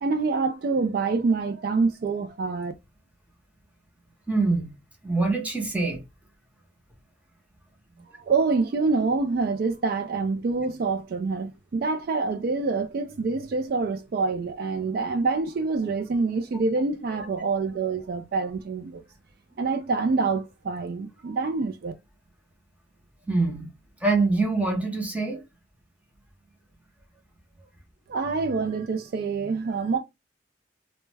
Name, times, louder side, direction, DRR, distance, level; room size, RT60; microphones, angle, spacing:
voice 1, 0.0-2.7 8.3-19.0 19.6-21.9 28.1-30.0, right 4 dB, 55° right, 0.3 m, -26 dB
voice 2, 4.3-4.7 5.0-6.0 23.3-23.7 24.0-25.4, right 3 dB, 10° right, 0.7 m, -24 dB
2.2 x 2.1 x 3.2 m
head